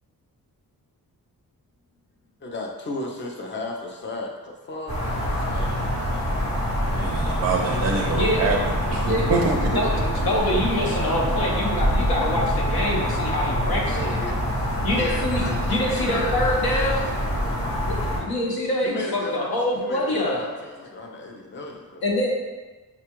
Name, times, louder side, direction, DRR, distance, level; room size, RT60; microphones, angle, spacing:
voice 1, 2.4-6.0 13.9-14.3 15.0-17.7 18.8-19.5 19.7-22.0, left 2 dB, 30° left, 1 dB, 0.5 m, -35 dB
sound 1, 4.9-18.2, equal, 50° left, 1.2 m, -25 dB
voice 2, 6.8-9.8, right 4 dB, 45° right, 0 dB, 0.4 m, -25 dB
voice 3, 8.1-8.5 9.0-9.3 9.7-14.2 14.8-17.0 17.8-20.5 22.0-22.3, left 1 dB, 80° left, -2 dB, 1.0 m, -25 dB
5.8 x 2.3 x 3.0 m, 1.3 s
wide cardioid pair, 140°, 36 cm